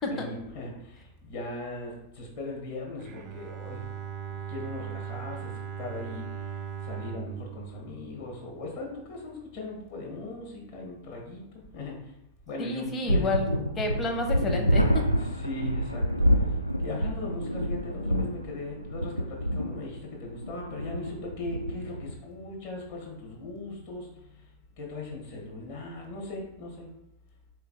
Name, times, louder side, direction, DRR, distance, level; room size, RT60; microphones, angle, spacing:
voice 1, 0.1-3.9 4.3-6.6 6.8-12.1 12.5-13.3 15.2-16.5 16.8-24.5 24.8-26.9, left 2 dB, 55° left, -1 dB, 1.6 m, -39 dB
Bowed string instrument, 3.0-9.0, right 8 dB, 40° right, 0.4 m, -39 dB
voice 2, 12.6-15.0, left 2 dB, 25° left, 2 dB, 0.9 m, -30 dB
sound 1, 13.1-22.1, equal, 85° left, 0.3 m, -28 dB
3.8 x 3.3 x 3.8 m, 0.83 s
figure-of-eight pair, 90°, 0 cm